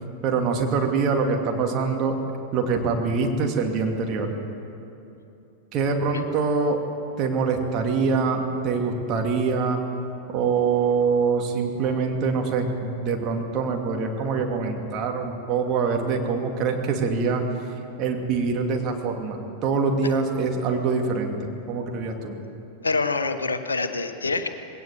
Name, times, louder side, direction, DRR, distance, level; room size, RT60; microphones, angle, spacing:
voice 1, 0.2-2.2 2.5-4.3 5.7-6.8 7.2-9.8 10.3-17.4 18.0-21.4 21.7-22.3, right 5 dB, 35° right, 2 dB, 2.6 m, -24 dB
voice 2, 22.8-24.5, left 3 dB, 75° left, 8 dB, 1.1 m, -25 dB
21.0 x 18.0 x 7.4 m, 2.9 s
figure-of-eight pair, 90°, 0 cm